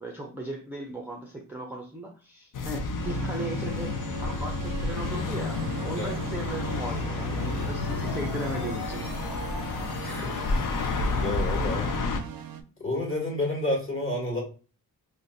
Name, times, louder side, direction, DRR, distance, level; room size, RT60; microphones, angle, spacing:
voice 1, 0.0-3.9 4.2-9.1, right 1 dB, 5° right, -1 dB, 0.5 m, -37 dB
sound 1, 2.5-12.2, left 3 dB, 55° left, 0.5 m, -30 dB
sound 2, 3.0-12.6, right 8 dB, 60° right, 0.5 m, -40 dB
sound 3, 7.1-11.9, left 3 dB, 85° left, 1.0 m, -44 dB
voice 2, 10.0-10.4 10.8-11.9 12.8-14.4, left 1 dB, 30° left, -2 dB, 1.3 m, -30 dB
2.5 x 2.1 x 3.9 m, 0.36 s
wide cardioid pair, 95°, 40 cm